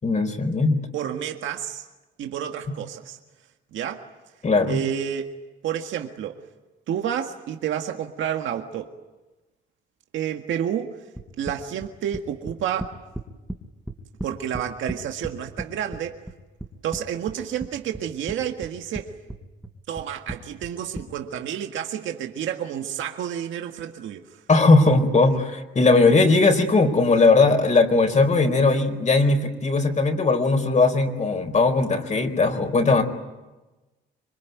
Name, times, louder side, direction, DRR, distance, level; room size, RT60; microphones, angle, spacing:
voice 1, 0.0-0.8 4.4-4.8 24.5-33.0, left 3 dB, 35° left, 4.3 m, -19 dB
voice 2, 0.9-1.9 2.2-3.2 3.7-4.1 4.7-5.4 5.6-6.4 6.9-8.9 10.1-11.0 11.4-13.0 14.2-16.2 16.8-19.1 19.9-24.4, right 9 dB, 80° right, 1.8 m, -30 dB
sound 1, 11.2-13.6 13.9-15.7 15.9-17.0 17.3-18.4 18.6-19.0 19.3-21.0, right 1 dB, 5° right, 3.3 m, -34 dB
26.5 x 22.5 x 9.3 m
cardioid pair, 90°, 20 cm